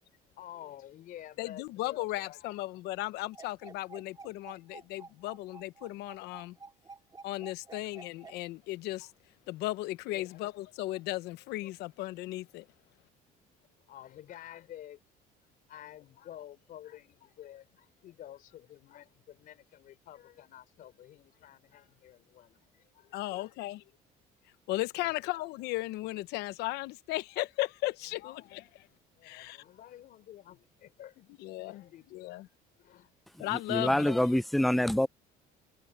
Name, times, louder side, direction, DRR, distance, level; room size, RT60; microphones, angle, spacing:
voice 1, 0.0-2.5 10.1-10.4 11.7-11.8 13.6-15.0 15.7-23.6 25.0-25.3 28.1-28.8 29.1-31.4 31.7-32.4 32.8-33.1, left 12 dB, 55° left, 3.5 m, -51 dB
voice 2, 1.4-6.6 7.2-9.1 9.5-12.7 23.1-23.8 24.7-28.6 29.2-29.6 31.4-31.8 32.1-32.5 33.4-34.2, left 18 dB, 85° left, 0.9 m, -36 dB
sound 1, 3.3-8.4, right 4 dB, 25° right, 2.1 m, -50 dB
voice 3, 33.5-35.1, left 1 dB, ahead, 0.4 m, -26 dB
cardioid pair, 135°, 17 cm